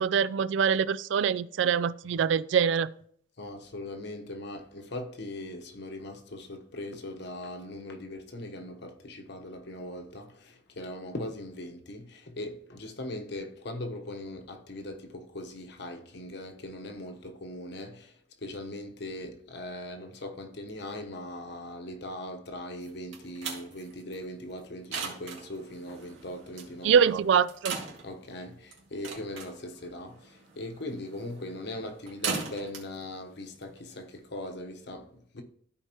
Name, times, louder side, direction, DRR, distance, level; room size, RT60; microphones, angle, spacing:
voice 1, 0.0-2.9 26.8-27.8, right 7 dB, 65° right, 0.3 m, -24 dB
voice 2, 3.4-27.0 28.0-35.4, left 1 dB, 60° left, 1.1 m, -40 dB
sound 1, 22.8-34.3, right 5 dB, 90° right, 2.2 m, -40 dB
13.5 x 4.7 x 3.0 m
head